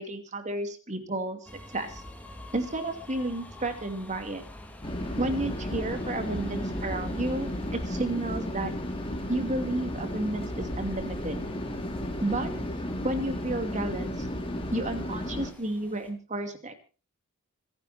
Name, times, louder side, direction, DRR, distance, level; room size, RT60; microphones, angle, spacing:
voice 1, 0.0-2.0 2.5-4.4 5.2-8.7 9.3-11.4 12.2-12.5 13.0-14.3 14.7-16.7, right 1 dB, 35° right, 7 dB, 2.7 m, -32 dB
sound 1, 1.5-16.1, left 1 dB, 5° left, 2.8 m, -48 dB
sound 2, 4.8-15.5, left 1 dB, 25° left, 2.8 m, -33 dB
26.0 x 10.5 x 4.3 m, 0.36 s
head